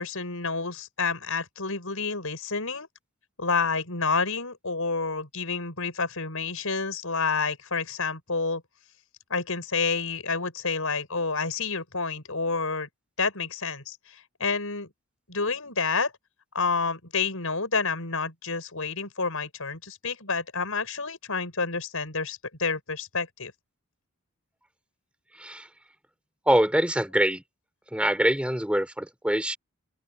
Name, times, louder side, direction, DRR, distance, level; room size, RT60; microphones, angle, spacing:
voice 1, 0.0-2.9 3.4-8.6 9.3-12.9 13.2-14.9 15.3-16.1 16.5-23.5, left 4 dB, 70° left, 7.3 m, -29 dB
voice 2, 26.5-27.4 27.9-29.6, right 1 dB, 5° right, 3.8 m, -24 dB
open air
head